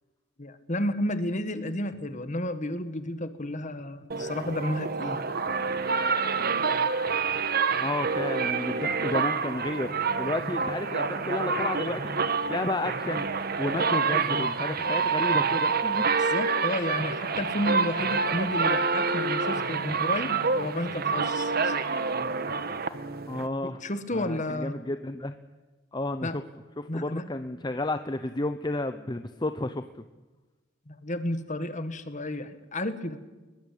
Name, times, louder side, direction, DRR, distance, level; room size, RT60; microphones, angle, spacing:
voice 1, 0.4-5.2 16.2-21.7 23.6-24.7 26.2-26.4 26.9-27.3 30.9-33.3, left 1 dB, 40° left, 10 dB, 1.7 m, -32 dB
sound 1, 4.1-23.5, right 5 dB, 50° right, 1.3 m, -27 dB
voice 2, 7.8-13.3 13.6-16.0 23.3-23.8 24.1-25.3 25.9-26.4 26.8-29.8, left 2 dB, 20° left, 9 dB, 0.8 m, -32 dB
21.5 x 21.5 x 8.6 m, 1.2 s
head